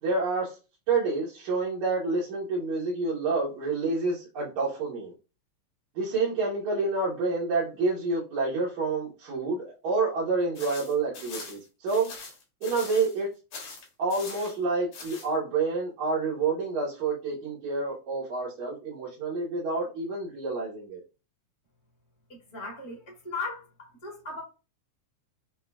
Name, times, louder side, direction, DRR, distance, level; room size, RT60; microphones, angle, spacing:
voice 1, 0.0-0.6 0.9-5.1 6.0-12.1 12.6-13.3 14.0-21.0, right 3 dB, 80° right, 2.6 m, -28 dB
sound 1, 10.5-13.2 13.5-14.6 14.9-15.3, left 4 dB, 80° left, 2.7 m, -42 dB
voice 2, 22.3-24.4, left 3 dB, 40° left, 0.4 m, -37 dB
7.1 x 2.4 x 2.3 m
omnidirectional pair, 3.3 m